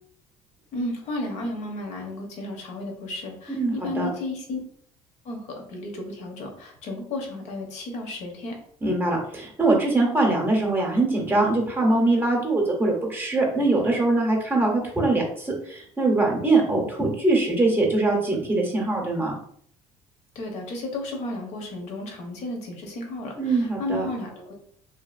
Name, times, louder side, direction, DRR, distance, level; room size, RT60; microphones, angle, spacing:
voice 1, 0.7-4.6 5.2-8.5 20.3-24.6, left 1 dB, 65° left, 1 dB, 0.9 m, -33 dB
voice 2, 3.5-4.1 8.8-19.4 23.4-24.1, right 2 dB, 15° right, 0 dB, 0.7 m, -22 dB
2.7 x 2.4 x 2.4 m, 0.62 s
cardioid pair, 125°, 13 cm